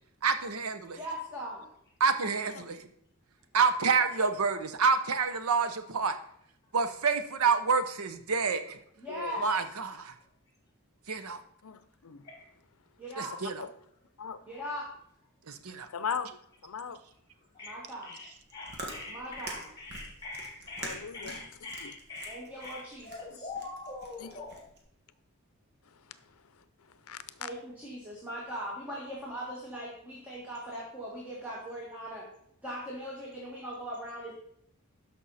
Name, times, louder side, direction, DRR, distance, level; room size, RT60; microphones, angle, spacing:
voice 1, 0.2-1.0 2.0-2.8 3.5-6.2 6.7-8.8 9.4-10.1 11.1-11.4 13.2-13.5 15.5-15.9, right 5 dB, 90° right, 10 dB, 0.8 m, -28 dB
voice 2, 1.0-1.7 9.0-9.5 13.0-13.3 14.5-14.9 17.6-18.1 19.1-19.7 21.2-21.4 22.3-23.5 27.4-32.3 32.6-34.3, equal, 10° right, -6 dB, 1.9 m, -40 dB
voice 3, 11.6-12.2 13.6-13.7 14.2-14.4 15.9-17.0 20.8-21.4 21.8-21.9 24.2-24.3 27.1-27.5, left 6 dB, 80° left, 14 dB, 0.6 m, -38 dB
voice 4, 18.0-24.6, left 3 dB, 20° left, -1 dB, 2.9 m, -43 dB
Chewing mastication, 18.3-24.8, right 2 dB, 50° right, 1.7 m, -45 dB
12.5 x 5.4 x 4.1 m, 0.70 s
head